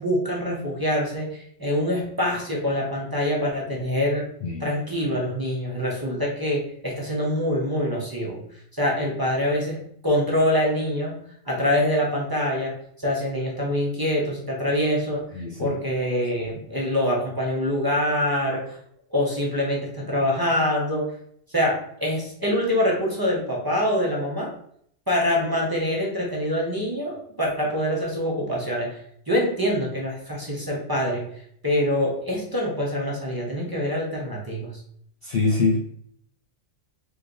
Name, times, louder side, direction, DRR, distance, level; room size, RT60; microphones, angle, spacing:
voice 1, 0.0-4.3 4.6-8.4 8.7-18.8 19.1-21.1 21.5-24.5 25.1-29.0 29.3-34.7, left 1 dB, 20° right, -3 dB, 0.9 m, -25 dB
voice 2, 15.3-15.8 35.2-35.8, left 3 dB, 60° left, 0 dB, 0.6 m, -24 dB
3.5 x 3.3 x 3.9 m, 0.68 s
omnidirectional pair, 1.4 m